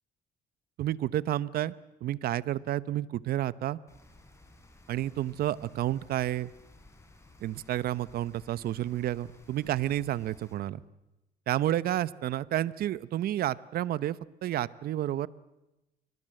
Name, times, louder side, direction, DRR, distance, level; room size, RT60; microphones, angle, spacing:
voice 1, 0.8-1.7 2.0-3.8 4.9-6.5 7.4-10.8 11.5-15.3, right 13 dB, 65° right, 18 dB, 0.9 m, -30 dB
Rain, 3.9-10.5, left 2 dB, 15° left, 5.4 m, -56 dB
28.0 x 23.5 x 7.8 m, 0.97 s
cardioid pair, 110°, 17 cm